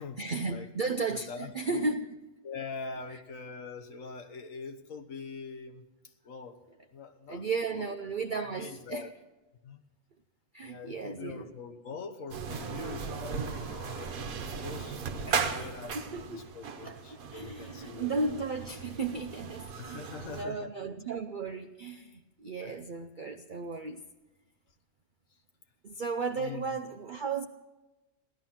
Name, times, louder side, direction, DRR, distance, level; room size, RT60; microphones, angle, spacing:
voice 1, 0.2-2.1 3.1-3.2 7.3-9.1 10.5-11.5 15.3-15.6 15.9-16.4 16.8-24.0 25.8-27.5, right 4 dB, 85° right, 6 dB, 0.4 m, -35 dB
voice 2, 1.1-1.8 2.4-6.6 6.9-7.9 8.3-9.1 9.6-9.8 10.6-14.3 14.6-18.2 19.8-20.7 22.6-22.8 25.3-25.4 26.4-26.8, left 4 dB, 60° left, 7 dB, 1.5 m, -43 dB
sound 1, 12.3-20.4, right 5 dB, 65° right, 1.4 m, -37 dB
16.5 x 11.5 x 5.9 m, 1.1 s
omnidirectional pair, 1.6 m